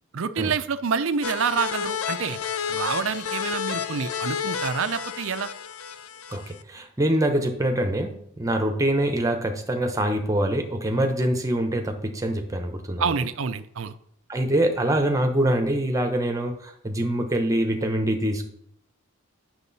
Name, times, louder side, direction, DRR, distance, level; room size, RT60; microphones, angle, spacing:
voice 1, 0.1-2.4 2.7-5.5 13.0-13.9, right 6 dB, 65° right, 12 dB, 0.5 m, -27 dB
sound 1, 1.2-6.6, left 7 dB, 85° left, 0.6 m, -31 dB
voice 2, 6.3-13.0 14.3-18.4, right 1 dB, 15° right, 5 dB, 0.9 m, -24 dB
8.2 x 6.4 x 4.1 m, 0.69 s
head